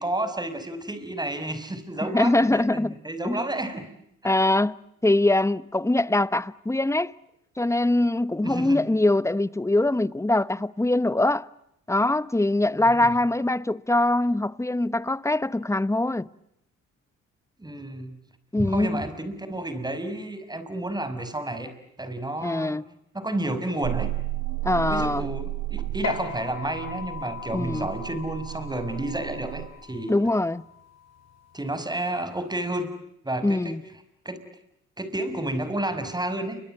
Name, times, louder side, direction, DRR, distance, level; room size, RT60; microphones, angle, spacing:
voice 1, 0.0-3.9 8.4-8.8 12.7-13.1 17.6-18.1 18.6-21.7 22.0-22.8 23.1-24.1 24.9-30.1 31.5-32.9 33.2-33.7 34.2-34.4 35.0-36.6, right 1 dB, 15° right, 6.0 m, -31 dB
voice 2, 2.1-3.0 3.2-3.4 4.2-4.8 5.0-7.1 7.6-11.5 11.9-16.3 18.5-19.0 22.4-22.8 24.6-25.3 27.5-27.9 30.1-30.6 33.4-33.8, left 2 dB, 10° left, 1.0 m, -23 dB
sound 1, 23.8-29.7, right 16 dB, 85° right, 2.1 m, -33 dB
sound 2, 26.0-32.8, left 6 dB, 60° left, 5.2 m, -40 dB
30.0 x 24.0 x 7.8 m
cardioid pair, 90°, 30 cm